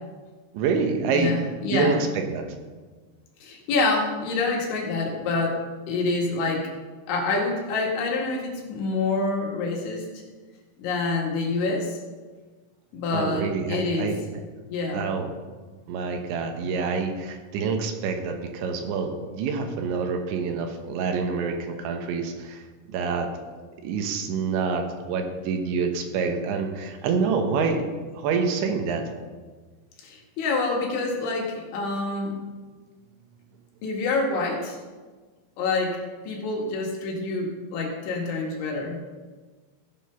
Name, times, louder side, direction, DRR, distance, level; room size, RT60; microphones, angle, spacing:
voice 1, 0.5-1.4 1.7-2.5 13.1-14.2 14.9-15.3 15.9-23.3 23.8-27.8 28.1-29.1, right 5 dB, 75° right, 4 dB, 3.2 m, -27 dB
voice 2, 1.1-2.0 3.4-5.6 5.9-6.7 7.1-10.1 10.8-12.0 12.9-14.1 14.7-15.0 30.0-32.4 33.8-34.8 35.6-39.0, left 3 dB, 75° left, -1 dB, 4.2 m, -27 dB
16.0 x 6.2 x 5.7 m, 1.4 s
omnidirectional pair, 5.5 m